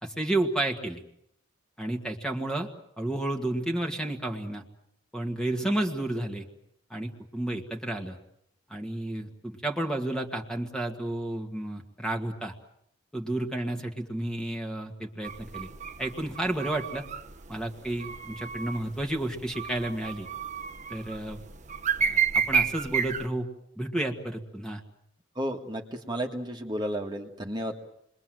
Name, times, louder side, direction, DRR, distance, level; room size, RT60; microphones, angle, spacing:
voice 1, 0.0-1.0 1.8-2.7 3.0-4.6 5.1-6.5 6.9-8.2 8.7-12.5 13.1-15.7 16.0-17.0 17.5-20.3 20.9-21.4 22.0-23.5 23.8-24.8, right 1 dB, 5° left, 4 dB, 2.0 m, -31 dB
sound 1, 15.2-23.3, right 7 dB, 40° right, 1.1 m, -31 dB
voice 2, 25.4-27.8, equal, 25° right, 2 dB, 1.9 m, -32 dB
29.0 x 22.0 x 7.7 m, 0.74 s
head